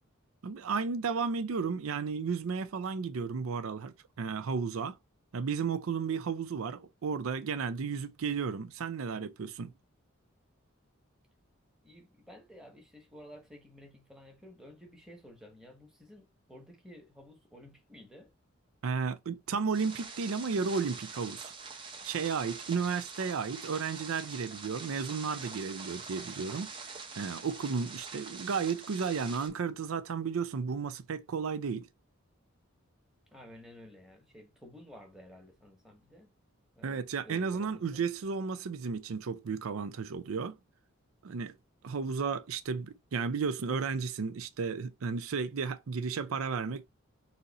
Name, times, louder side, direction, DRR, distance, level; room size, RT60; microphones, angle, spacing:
voice 1, 0.4-4.9 5.3-9.7 18.8-21.5 22.0-26.7 27.2-31.9 36.8-40.5 41.2-41.5 41.8-46.8, right 5 dB, 80° right, 0.5 m, -33 dB
voice 2, 11.8-18.3 33.3-36.3 36.8-38.0, left 1 dB, 5° right, 1.1 m, -53 dB
sound 1, 19.7-29.5, right 4 dB, 25° right, 0.7 m, -45 dB
4.0 x 2.8 x 4.0 m
head